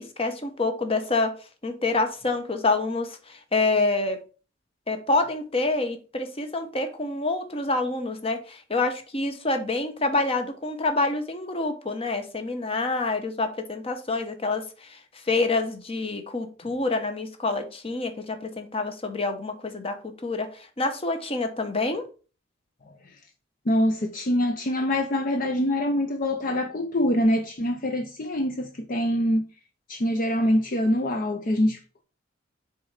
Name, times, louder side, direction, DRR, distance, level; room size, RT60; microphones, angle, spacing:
voice 1, 0.0-1.3 1.6-4.2 4.9-15.0 15.3-20.5 20.8-22.0, left 3 dB, 30° left, 0.9 m, -27 dB
voice 2, 23.7-29.4 29.9-32.0, left 1 dB, 45° left, 0.6 m, -24 dB
6.6 x 4.0 x 4.0 m
head